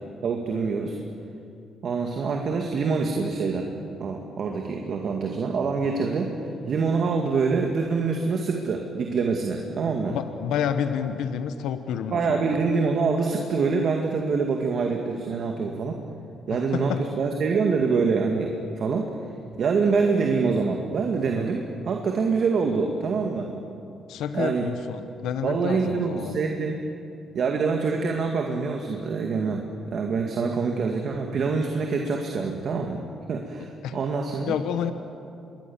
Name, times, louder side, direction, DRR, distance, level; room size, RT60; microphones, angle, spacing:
voice 1, 0.2-1.0 1.8-3.7 4.0-6.3 6.7-10.2 12.1-16.0 16.5-19.1 19.6-23.5 24.3-24.7 25.4-26.8 27.3-33.0 33.3-34.5, right 4 dB, 60° right, 2 dB, 2.2 m, -25 dB
voice 2, 10.1-12.6 16.5-17.0 24.1-26.4 33.6-34.0 34.4-34.9, left 8 dB, 85° left, 9 dB, 1.1 m, -29 dB
26.0 x 22.0 x 7.3 m, 2.6 s
cardioid pair, 90°, 0 cm